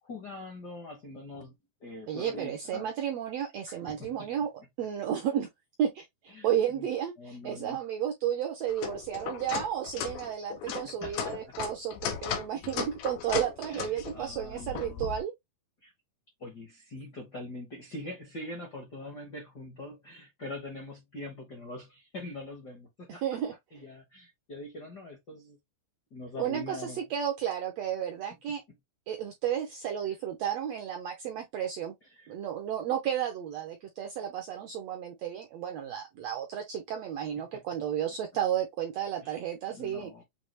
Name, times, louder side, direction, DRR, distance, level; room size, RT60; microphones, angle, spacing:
voice 1, 0.0-1.5 1.8-2.9 3.7-4.3 6.3-6.9 7.2-7.9 9.9-10.1 10.6-11.5 13.7-15.1 15.8-15.9 16.4-23.2 23.7-25.6 26.1-27.0 32.2-32.3 39.2-39.4 39.8-40.2, left 2 dB, 55° left, 1.1 m, -43 dB
voice 2, 2.1-4.5 4.8-5.5 5.8-15.3 23.2-23.5 26.4-28.6 29.1-31.9 32.3-40.1, right 9 dB, 75° right, 1.6 m, -32 dB
sound 1, 8.7-15.2, left 8 dB, 90° left, 2.6 m, -36 dB
6.8 x 2.3 x 3.1 m
omnidirectional pair, 3.9 m